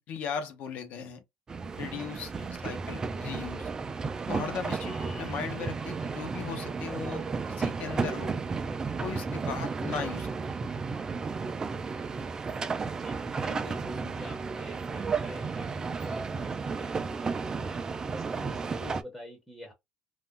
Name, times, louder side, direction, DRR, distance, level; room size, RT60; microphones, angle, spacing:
voice 1, 0.1-1.2 1.8-3.7 4.3-7.2 7.6-8.3 9.0-10.3, left 6 dB, 55° left, 0.8 m, -37 dB
sound 1, 1.5-19.0, right 4 dB, 20° right, 0.3 m, -33 dB
voice 2, 4.8-5.4 13.0-17.8 18.1-19.7, left 1 dB, ahead, 0.7 m, -47 dB
2.5 x 2.1 x 3.6 m
cardioid pair, 145°, 3 cm